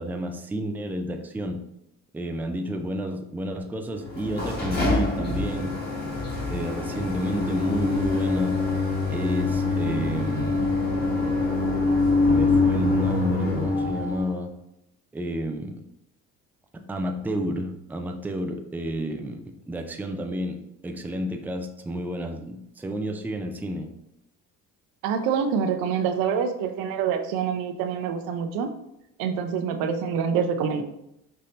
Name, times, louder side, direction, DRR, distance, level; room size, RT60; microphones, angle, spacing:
voice 1, 0.0-1.6 2.1-5.8 6.5-8.6 9.1-10.8 12.3-14.5 15.1-15.8 16.7-23.9, equal, 5° right, 5 dB, 0.4 m, -30 dB
sound 1, 4.0-14.3, left 3 dB, 25° left, 1.7 m, -25 dB
voice 2, 25.0-28.7 29.2-30.8, right 7 dB, 80° right, 6 dB, 0.6 m, -26 dB
5.4 x 2.7 x 3.2 m, 0.83 s
supercardioid pair, 85°, 35 cm